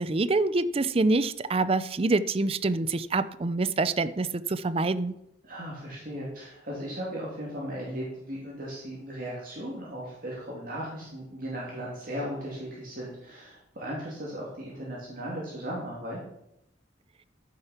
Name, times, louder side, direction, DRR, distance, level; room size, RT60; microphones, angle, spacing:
voice 1, 0.0-5.1, right 3 dB, 30° right, 14 dB, 0.5 m, -26 dB
voice 2, 5.4-16.2, equal, 50° right, -5 dB, 2.9 m, -37 dB
14.5 x 6.5 x 5.9 m, 0.80 s
head